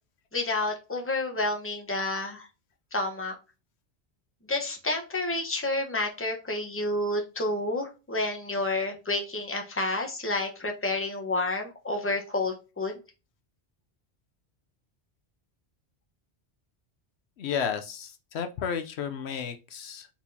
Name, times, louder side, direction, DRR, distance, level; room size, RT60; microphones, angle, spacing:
voice 1, 0.3-2.5 2.9-3.3 4.5-13.0, left 2 dB, 10° left, 2 dB, 1.0 m, -30 dB
voice 2, 17.4-20.1, left 7 dB, 75° left, 8 dB, 0.9 m, -32 dB
4.4 x 4.2 x 2.7 m, 0.30 s
omnidirectional pair, 1.1 m